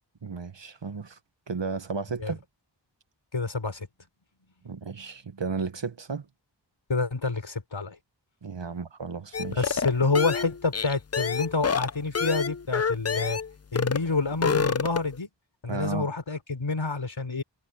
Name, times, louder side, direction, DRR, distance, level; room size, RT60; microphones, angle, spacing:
voice 1, 0.2-1.2 1.5-2.4 4.6-6.3 8.4-9.7 15.7-16.1, right 4 dB, 75° right, 1.5 m, -33 dB
voice 2, 3.3-3.9 6.9-8.0 8.7-8.8 9.5-13.4 13.7-15.3 15.6-17.4, left 3 dB, 90° left, 4.7 m, -28 dB
sound 1, 9.3-13.5 13.8-14.1 14.3-15.2, left 6 dB, 35° left, 0.5 m, -27 dB
wide cardioid pair, 45°, 44 cm